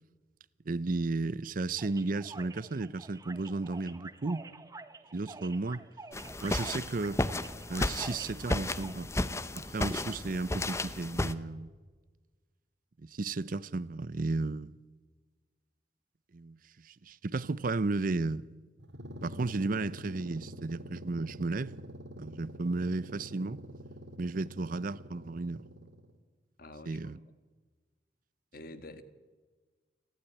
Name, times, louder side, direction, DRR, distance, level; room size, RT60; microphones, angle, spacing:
voice 1, 0.7-4.5 5.1-5.8 6.4-7.2 7.7-9.1 9.5-11.7 13.0-14.7 16.3-18.5 19.2-21.9 22.2-23.6 24.2-25.6 26.9-27.2, right 3 dB, 50° right, 0.6 m, -34 dB
sound 1, 1.8-8.9, right 3 dB, 20° right, 0.9 m, -48 dB
sound 2, 6.1-11.3, left 2 dB, 15° left, 0.7 m, -33 dB
sound 3, 18.8-26.2, equal, 90° right, 2.2 m, -46 dB
voice 2, 26.6-27.0 28.5-29.0, left 2 dB, 55° left, 1.6 m, -47 dB
29.0 x 12.0 x 9.9 m
head